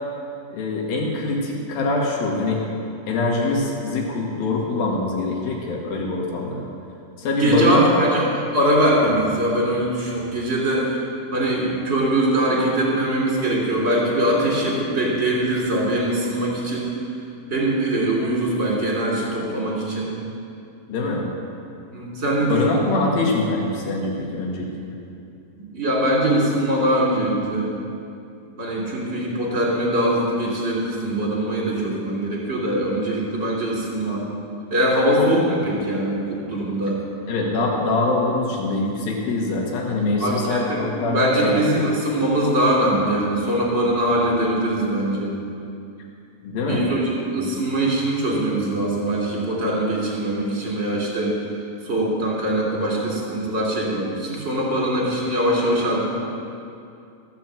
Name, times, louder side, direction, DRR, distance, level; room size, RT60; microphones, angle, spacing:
voice 1, 0.5-2.6 3.1-6.6 7.2-8.1 20.9-21.3 22.4-25.0 37.3-41.8 46.4-46.9, left 2 dB, 80° left, -2 dB, 3.5 m, -23 dB
voice 2, 7.4-8.3 8.5-11.0 11.3-17.0 17.5-20.2 21.9-22.8 25.7-27.7 28.6-34.2 34.7-37.0 40.2-45.4 46.7-51.4 51.8-56.0, right 1 dB, 20° right, -4 dB, 2.7 m, -22 dB
15.5 x 6.1 x 7.5 m, 2.5 s
omnidirectional pair, 4.2 m